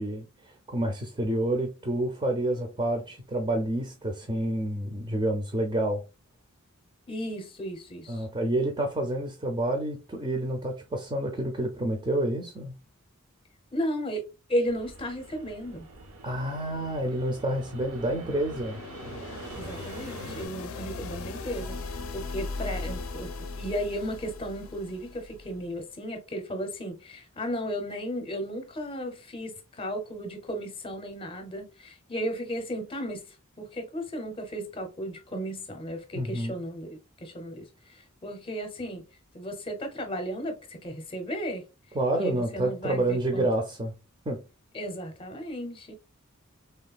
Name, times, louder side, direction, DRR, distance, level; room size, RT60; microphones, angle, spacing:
voice 1, 0.0-6.0 8.1-12.8 16.2-18.8 36.1-36.6 41.9-43.9 44.3-44.4, right 1 dB, 20° right, 0.5 m, -29 dB
voice 2, 7.1-8.3 13.7-15.9 19.5-33.3 33.6-39.0 39.3-41.6 42.1-43.5 44.7-45.9, equal, 25° left, 0.7 m, -35 dB
Fixed-wing aircraft airplane, 14.7-20.5, right 2 dB, 70° right, 0.5 m, -44 dB
sound 1, 17.1-25.7, left 3 dB, 65° left, 0.5 m, -39 dB
3.3 x 2.3 x 2.3 m
head